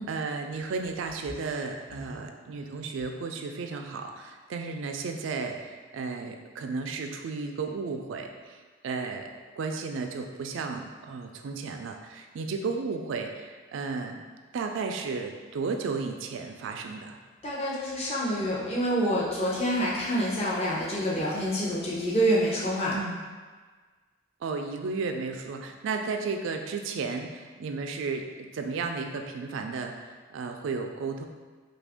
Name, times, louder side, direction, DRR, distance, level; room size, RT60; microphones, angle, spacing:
voice 1, 0.0-9.3 9.6-14.2 14.5-17.2 22.9-23.2 24.4-31.3, right 4 dB, 65° right, 4 dB, 0.3 m, -34 dB
voice 2, 17.4-23.0, equal, 30° left, -6 dB, 0.6 m, -27 dB
3.3 x 2.5 x 3.5 m, 1.4 s
head